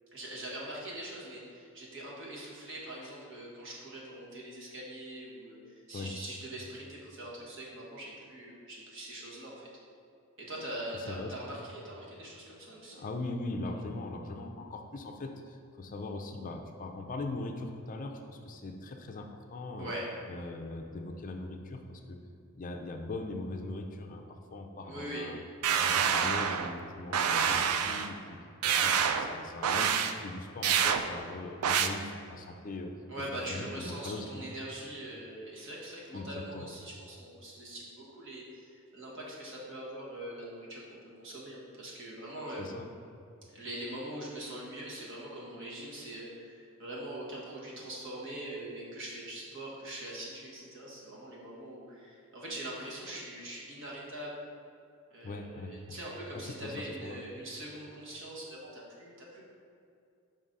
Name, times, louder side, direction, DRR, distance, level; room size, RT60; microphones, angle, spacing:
voice 1, 0.1-9.7 10.4-13.1 19.8-20.1 24.8-25.3 33.1-40.8 41.2-42.6 43.5-54.3 55.1-59.5, right 1 dB, 60° right, -4 dB, 1.5 m, -42 dB
voice 2, 12.9-19.9 20.3-22.2 22.6-25.4 25.8-28.4 28.6-32.9 33.5-34.4 36.1-36.6 42.6-42.9 55.2-56.0 56.3-57.2, left 2 dB, 35° left, 4 dB, 0.4 m, -40 dB
sound 1, 25.6-26.7 27.1-28.1 28.6-29.3 29.6-30.1 30.6-31.0 31.6-31.9, right 7 dB, 75° right, 0.4 m, -27 dB
5.2 x 3.8 x 5.4 m, 2.5 s
head